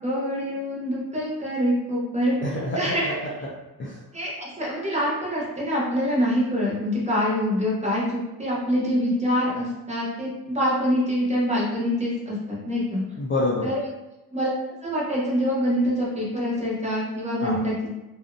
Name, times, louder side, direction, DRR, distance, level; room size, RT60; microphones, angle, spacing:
voice 1, 0.0-2.4 2.7-3.1 4.1-13.0 13.6-13.8 14.3-14.5 14.8-17.9, equal, 15° right, -5 dB, 0.8 m, -25 dB
voice 2, 2.4-3.5 3.8-4.0 13.1-13.7 17.4-17.6, left 1 dB, 30° left, -4 dB, 0.4 m, -27 dB
2.6 x 2.0 x 2.5 m, 0.99 s
cardioid pair, 110°, 39 cm